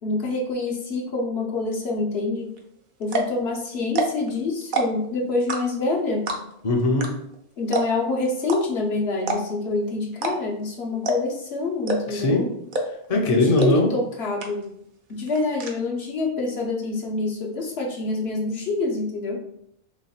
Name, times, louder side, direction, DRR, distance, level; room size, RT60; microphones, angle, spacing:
voice 1, 0.0-2.5 3.0-6.3 7.6-12.4 13.1-14.7 15.1-19.4, left 3 dB, 65° left, -1 dB, 1.1 m, -26 dB
sound 1, 2.6-2.7 3.0-3.4 3.8-4.3 4.6-5.1 5.5-5.9 6.3-6.6 7.0-7.1 7.3-7.4 7.7-8.1 8.5-8.6 9.2-9.6 10.1-10.6 11.0-11.4 11.8-12.2 12.7-13.1 13.6-13.7 14.0-14.1 14.4-14.8 15.1-15.7, right 2 dB, 55° right, 0.8 m, -25 dB
voice 2, 6.6-7.1 12.1-12.5 13.1-13.9, left 2 dB, 40° left, 0 dB, 0.7 m, -20 dB
3.1 x 3.1 x 4.3 m, 0.74 s
omnidirectional pair, 1.2 m